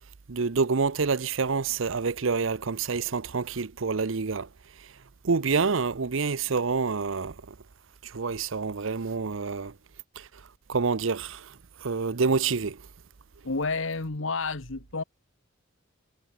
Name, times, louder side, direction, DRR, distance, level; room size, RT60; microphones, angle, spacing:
voice 1, 0.3-4.5 5.2-7.4 8.0-9.7 10.2-10.3 10.7-11.5 11.8-12.8, right 4 dB, 65° right, 0.7 m, -27 dB
voice 2, 13.4-15.0, left 3 dB, 65° left, 1.4 m, -30 dB
head